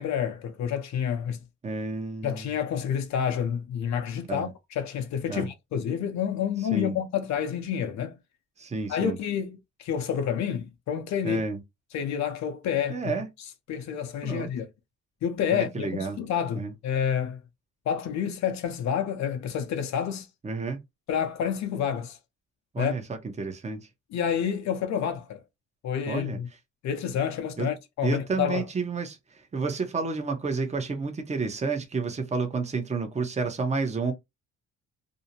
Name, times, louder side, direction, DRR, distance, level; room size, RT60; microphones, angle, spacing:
voice 1, 0.0-1.4 2.2-8.1 8.9-11.4 11.9-13.1 13.7-14.7 15.2-17.4 17.9-20.3 21.1-22.2 22.8-22.9 24.1-25.4 25.8-26.5 26.8-28.6, left 8 dB, 65° left, 0.6 m, -29 dB
voice 2, 1.6-2.5 4.3-4.5 5.3-5.5 6.7-6.9 8.6-9.2 11.2-11.6 12.9-13.3 14.2-14.5 15.5-16.2 16.6-16.7 20.4-20.8 22.7-23.9 26.1-26.4 27.6-27.7 28.0-34.1, right 4 dB, 20° right, 0.7 m, -30 dB
2.5 x 2.0 x 2.8 m
cardioid pair, 90°, 30 cm